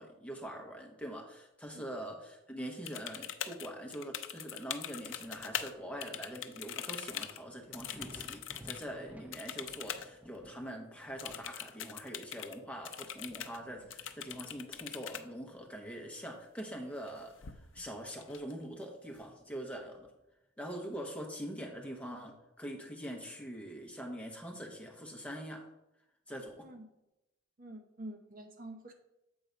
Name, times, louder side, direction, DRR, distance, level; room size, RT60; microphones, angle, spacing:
voice 1, 0.0-20.1 20.6-25.7 26.3-26.7, equal, 5° left, 1 dB, 1.0 m, -44 dB
sound 1, 2.9-5.7 6.0-8.9 9.3-10.1 10.3-10.4 11.2-12.6 12.8-13.6 13.9-15.2 16.9-17.1 17.4-17.9 18.2-18.8, left 9 dB, 75° left, 0.5 m, -42 dB
Thunder, 4.8-16.2 16.6-18.1 18.4-18.5 19.1-20.4 21.8-21.9, equal, 10° right, 0.6 m, -58 dB
voice 2, 27.6-28.9, right 1 dB, 45° right, 5 dB, 0.7 m, -47 dB
7.9 x 3.9 x 5.0 m, 0.91 s
head